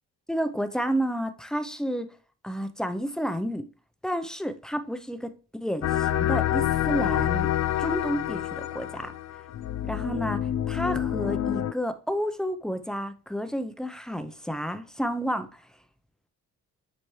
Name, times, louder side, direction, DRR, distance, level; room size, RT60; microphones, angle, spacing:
voice 1, 0.3-2.1 2.4-3.7 4.0-7.5 7.8-9.1 9.8-15.7, equal, ahead, 0.7 m, -31 dB
sound 1, 5.8-11.7, left 12 dB, 60° left, 0.6 m, -27 dB
9.8 x 4.2 x 3.2 m
cardioid pair, 90°, 30 cm